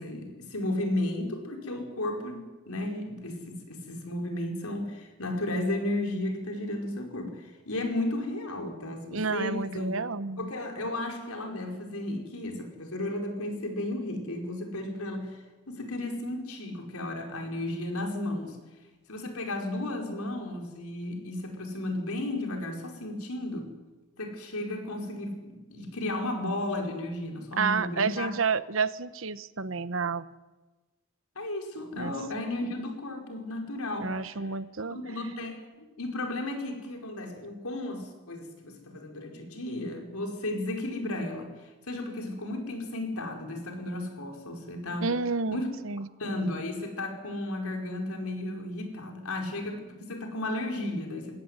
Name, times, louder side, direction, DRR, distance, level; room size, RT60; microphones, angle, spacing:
voice 1, 0.0-9.9 10.4-15.4 15.7-18.6 19.1-23.7 24.2-28.3 31.3-34.3 34.8-41.5 41.9-45.1 45.5-45.7 46.2-51.4, left 1 dB, 90° left, 3 dB, 5.0 m, -34 dB
voice 2, 9.1-10.5 27.6-30.3 32.0-32.1 34.0-35.0 45.0-46.1, right 4 dB, 65° right, 15 dB, 1.0 m, -30 dB
21.5 x 17.0 x 9.7 m, 1.2 s
head